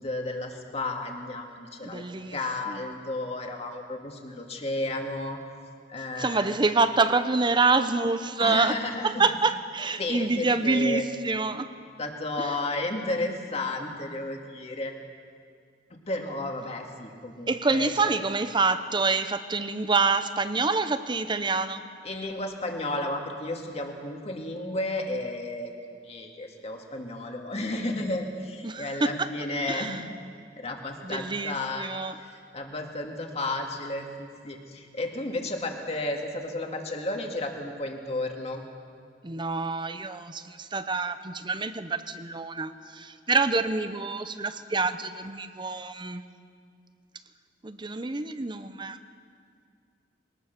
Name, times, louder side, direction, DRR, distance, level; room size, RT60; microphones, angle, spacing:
voice 1, 0.0-2.0 2.3-5.4 5.9-6.5 8.4-9.2 10.0-11.1 12.0-14.9 15.9-18.1 22.0-30.0 30.6-31.9 32.2-38.6, left 2 dB, 35° left, 2 dB, 2.2 m, -33 dB
voice 2, 1.8-2.4 2.7-2.8 6.2-8.8 9.0-11.7 12.4-12.5 17.5-21.8 28.6-29.3 29.7-30.0 31.0-32.2 39.2-46.2 47.6-49.0, right 3 dB, 25° right, 11 dB, 0.8 m, -27 dB
22.0 x 18.5 x 6.8 m, 2.2 s
head